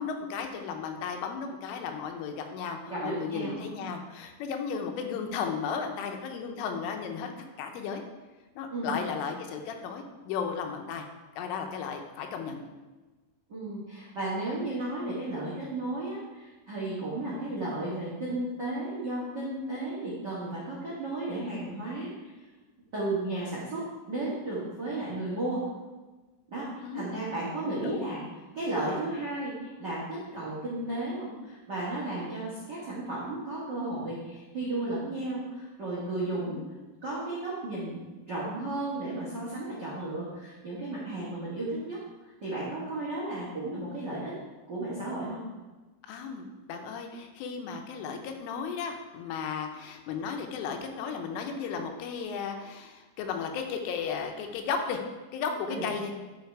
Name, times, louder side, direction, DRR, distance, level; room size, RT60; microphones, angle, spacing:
voice 1, 0.0-7.3 7.6-8.0 8.6-11.1 11.4-12.6 26.8-27.1 27.8-28.1 28.8-29.0 36.3-36.7 46.1-55.0 55.3-56.1, left 6 dB, 80° left, 4 dB, 3.3 m, -35 dB
voice 2, 2.9-3.6 8.7-9.1 13.5-22.3 22.9-25.6 26.5-28.2 28.5-36.6 37.0-38.0 38.3-42.0 42.4-44.3 44.7-45.4 55.7-55.9, right 2 dB, 75° right, -7 dB, 0.9 m, -34 dB
11.5 x 5.1 x 4.7 m, 1.2 s
omnidirectional pair, 5.7 m